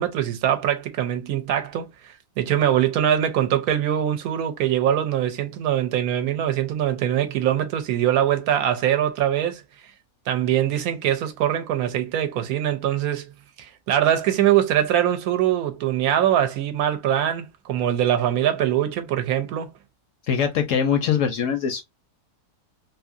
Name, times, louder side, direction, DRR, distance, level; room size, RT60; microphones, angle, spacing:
voice 1, 0.0-9.6 10.3-13.3 13.6-19.7, right 11 dB, 75° right, 1.0 m, -23 dB
voice 2, 20.3-21.8, left 7 dB, 70° left, 0.8 m, -22 dB
2.8 x 2.6 x 2.4 m
omnidirectional pair, 1.7 m